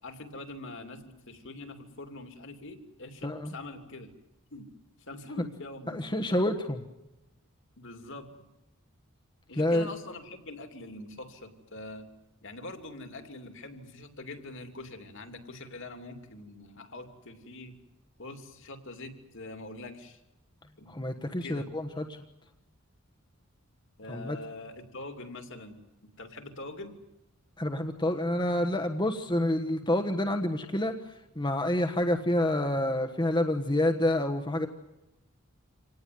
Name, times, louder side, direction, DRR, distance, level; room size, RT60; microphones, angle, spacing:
voice 1, 0.0-4.1 4.5-4.7 5.1-6.3 7.8-8.3 9.5-12.1 12.4-17.8 18.2-20.2 20.8-21.7 24.0-27.0, left 2 dB, 60° left, 6 dB, 2.9 m, -44 dB
voice 2, 5.9-6.8 9.5-9.9 20.9-22.2 24.1-24.4 27.6-34.7, left 1 dB, 20° left, 6 dB, 1.3 m, -28 dB
26.5 x 18.5 x 9.4 m, 0.97 s
head